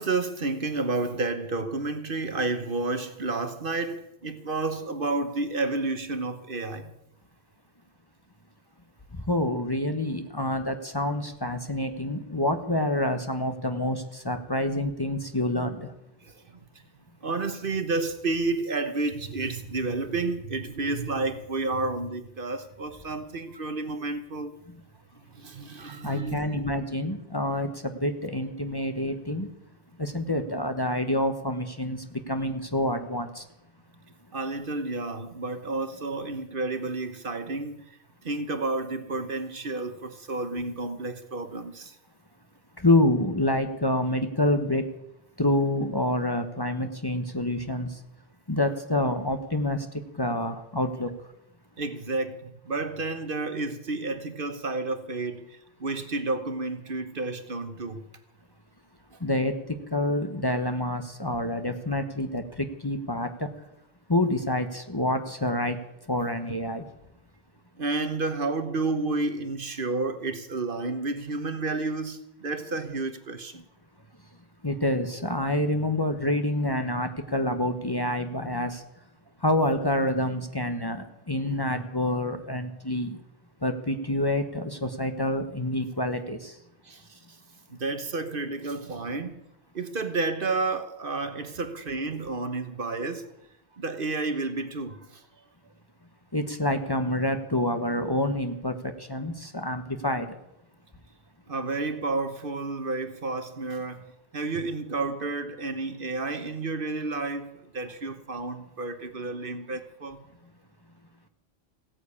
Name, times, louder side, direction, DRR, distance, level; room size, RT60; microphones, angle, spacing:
voice 1, 0.0-6.9 16.2-16.3 17.2-24.5 25.4-26.6 34.3-37.8 38.2-41.9 51.8-55.5 55.8-58.0 67.8-73.6 86.8-87.0 87.7-89.4 89.7-93.2 93.8-95.1 101.5-110.2, right 3 dB, 55° right, 1.3 m, -31 dB
voice 2, 9.3-15.9 26.0-29.5 30.0-33.4 42.8-44.8 45.4-47.9 48.5-49.9 50.2-51.1 59.2-63.5 64.1-65.8 66.1-66.8 74.6-78.8 79.4-83.2 83.6-86.5 96.3-100.3, left 1 dB, 25° left, 1.1 m, -27 dB
16.5 x 9.6 x 8.5 m
omnidirectional pair, 1.1 m